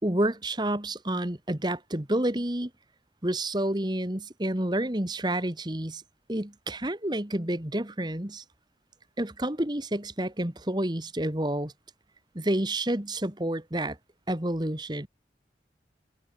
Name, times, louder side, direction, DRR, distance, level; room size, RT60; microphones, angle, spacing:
voice 1, 0.0-2.7 3.2-6.0 6.3-8.4 9.2-11.7 12.4-14.0 14.3-15.1, right 1 dB, 25° right, 1.8 m, -29 dB
head